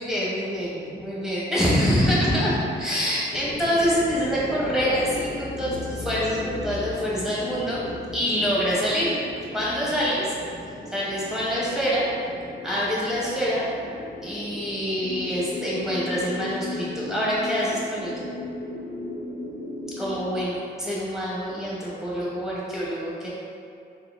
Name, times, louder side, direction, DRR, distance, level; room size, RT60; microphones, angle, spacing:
voice 1, 0.0-7.8 8.1-9.2 9.5-10.3 10.9-12.1 12.6-13.6 14.2-18.2 20.0-23.3, equal, ahead, -8 dB, 0.8 m, -25 dB
sound 1, 3.3-20.3, left 2 dB, 65° left, 0.7 m, -36 dB
3.6 x 2.0 x 2.2 m, 2.4 s
cardioid pair, 65°, 20 cm